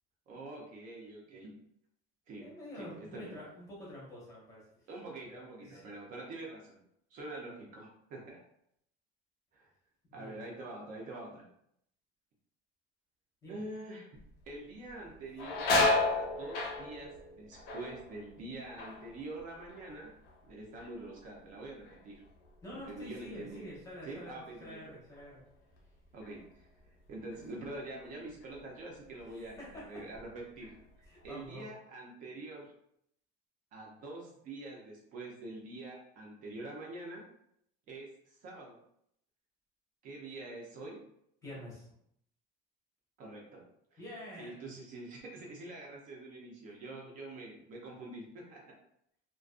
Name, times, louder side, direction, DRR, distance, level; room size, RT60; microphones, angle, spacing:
voice 1, 0.3-1.5 2.3-2.5 2.7-3.4 4.9-6.8 7.1-8.4 9.5-9.7 10.1-11.5 13.5-14.2 14.5-15.6 16.1-20.1 20.5-22.2 22.8-23.6 24.0-24.8 26.1-26.7 27.1-30.7 31.0-32.7 33.7-37.2 37.9-38.8 40.0-41.0 43.2-43.6 43.9-44.0 44.4-48.6, right 2 dB, 40° right, -1 dB, 0.5 m, -45 dB
voice 2, 2.4-4.7 5.3-5.9 10.1-10.4 13.4-13.6 22.6-25.4 29.3-30.1 31.1-31.7 41.4-41.9 44.0-44.7, left 1 dB, 15° left, -6 dB, 0.7 m, -48 dB
sound 1, 14.2-14.5 14.9-20.5 20.8-21.4 21.9-24.8 25.1-25.2 26.2-26.4 26.9-28.0 28.4-28.6 29.2-29.8 30.1-31.3, left 2 dB, 55° left, 0.6 m, -34 dB
2.4 x 2.2 x 2.4 m, 0.73 s
cardioid pair, 175°, 20 cm